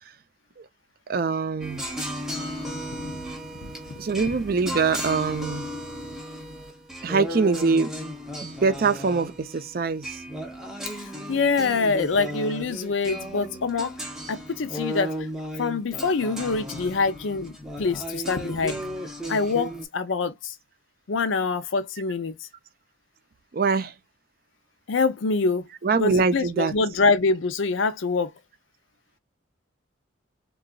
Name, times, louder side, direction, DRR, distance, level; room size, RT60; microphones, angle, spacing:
voice 1, 1.1-1.8 4.0-5.7 7.0-7.9 8.4-10.2 23.5-23.9 25.8-26.8, right 4 dB, 50° right, 0.4 m, -23 dB
sound 1, 1.6-19.8, equal, ahead, 0.6 m, -35 dB
voice 2, 3.6-4.0 11.3-15.1 15.6-18.8 19.3-20.5 21.1-22.4 24.9-25.7 26.0-28.3, left 4 dB, 80° left, 0.5 m, -25 dB
3.8 x 2.3 x 2.3 m
head